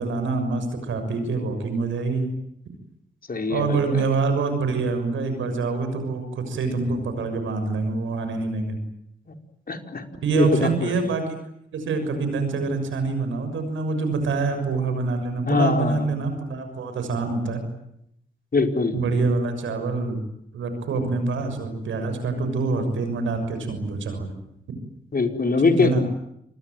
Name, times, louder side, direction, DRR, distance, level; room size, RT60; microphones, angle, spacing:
voice 1, 0.0-2.3 3.5-8.8 10.2-11.3 11.7-17.6 18.9-20.2 20.5-24.3 25.6-26.0, right 3 dB, 85° right, 8 dB, 6.5 m, -25 dB
voice 2, 3.3-4.0 9.7-10.0 10.3-10.9 15.5-16.1 18.5-18.9 25.1-26.0, left 4 dB, 50° left, 5 dB, 4.9 m, -22 dB
28.0 x 21.5 x 9.2 m, 0.76 s
supercardioid pair, 40°, 20 cm